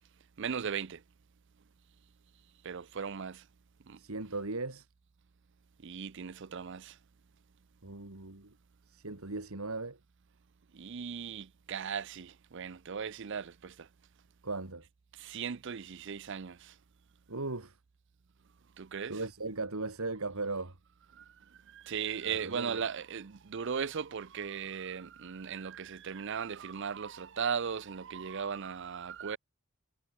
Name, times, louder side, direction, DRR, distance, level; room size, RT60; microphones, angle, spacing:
voice 1, 0.4-1.0 2.6-3.4 3.9-4.0 5.8-7.0 10.7-13.9 15.1-16.7 18.8-19.2 21.1-21.3 21.7-29.4, right 6 dB, 55° right, 0.5 m, -37 dB
voice 2, 4.0-4.9 7.8-8.5 8.9-10.0 14.4-14.8 17.3-17.8 19.1-20.8 22.3-22.8, right 3 dB, 80° right, 2.2 m, -38 dB
head